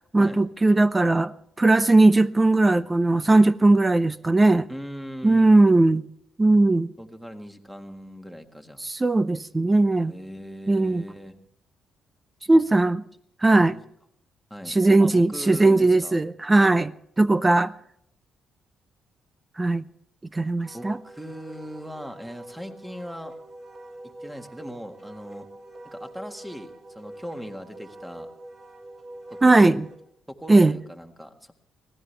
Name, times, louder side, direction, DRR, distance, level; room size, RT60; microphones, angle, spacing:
voice 1, 0.1-1.3 1.6-4.7 5.2-6.0 6.4-6.9 8.8-10.1 10.7-11.0 12.5-13.0 13.4-13.8 14.7-16.9 17.2-17.7 19.6-19.8 20.3-21.0 29.4-29.8 30.5-30.7, right 2 dB, 20° right, 0.5 m, -18 dB
voice 2, 4.7-5.9 7.0-8.8 10.1-11.4 12.5-12.6 13.5-13.8 14.5-16.2 20.7-23.4 24.0-25.5 25.9-28.3 29.3-29.7 30.3-31.5, equal, 5° right, 1.7 m, -39 dB
Wind instrument woodwind instrument, 20.6-30.0, right 1 dB, 45° right, 6.1 m, -44 dB
24.5 x 17.0 x 3.4 m
cardioid pair, 90°, 0 cm